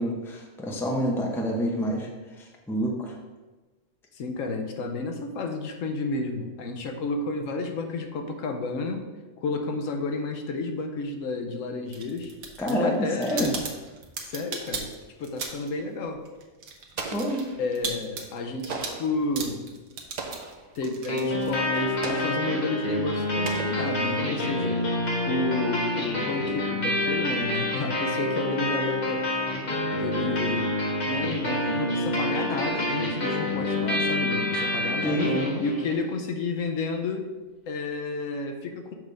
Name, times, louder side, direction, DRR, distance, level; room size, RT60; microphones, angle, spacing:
voice 1, 0.0-2.1 2.7-3.1 12.6-13.5 17.1-17.5 35.0-35.5, equal, 5° left, 0 dB, 0.5 m, -27 dB
voice 2, 4.1-9.1 9.4-12.3 12.7-13.6 14.2-14.9 15.2-16.2 17.6-19.6 20.8-24.8 25.3-29.3 30.0-30.8 31.1-37.3 37.7-38.9, left 3 dB, 70° left, 4 dB, 1.1 m, -31 dB
sound 1, 11.9-15.8 16.1-21.9, right 5 dB, 90° right, 1.3 m, -37 dB
Explosion, 17.0-17.9 18.7-19.2 20.2-20.7 22.0-22.6 23.4-24.3, right 4 dB, 50° right, 0.5 m, -37 dB
sound 2, 21.1-36.1, left 1 dB, 35° left, 1.1 m, -27 dB
6.4 x 3.5 x 5.2 m, 1.2 s
omnidirectional pair, 1.4 m